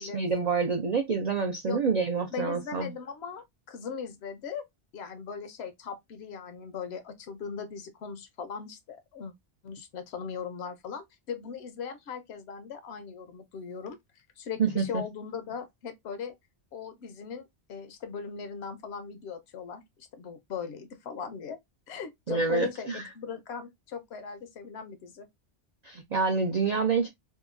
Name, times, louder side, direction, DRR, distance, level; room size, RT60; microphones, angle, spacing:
voice 1, 0.0-2.9 14.6-15.0 22.3-23.0 25.8-27.1, right 5 dB, 65° right, 0.4 m, -27 dB
voice 2, 2.3-4.6 4.9-9.3 9.6-14.0 14.4-16.3 16.7-21.6 21.9-25.3, left 6 dB, 70° left, 0.8 m, -39 dB
2.8 x 2.2 x 2.4 m
omnidirectional pair, 1.2 m